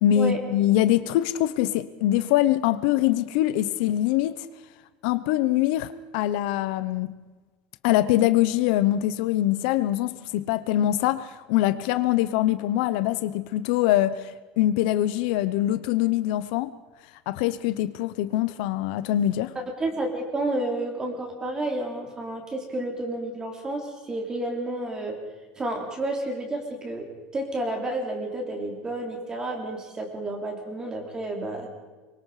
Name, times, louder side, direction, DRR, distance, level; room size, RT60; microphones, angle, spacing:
voice 1, 0.0-4.5 5.0-7.1 7.8-14.3 14.6-16.7 17.3-19.5, left 13 dB, 70° left, 0.9 m, -23 dB
voice 2, 19.5-25.2 25.6-31.7, right 1 dB, 15° right, 3.3 m, -30 dB
25.5 x 23.5 x 5.0 m
cardioid pair, 175°, 5 cm